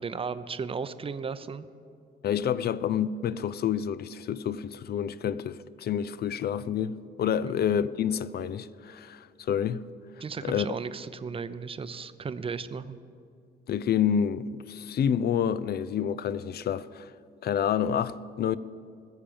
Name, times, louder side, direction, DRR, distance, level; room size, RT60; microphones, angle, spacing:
voice 1, 0.0-1.7 7.5-7.6 10.2-13.0, right 5 dB, 30° right, 0.6 m, -35 dB
voice 2, 2.2-9.8 10.4-10.7 13.7-17.1 17.4-18.6, left 8 dB, 55° left, 0.5 m, -28 dB
20.5 x 7.3 x 5.1 m
cardioid pair, 90°, 20 cm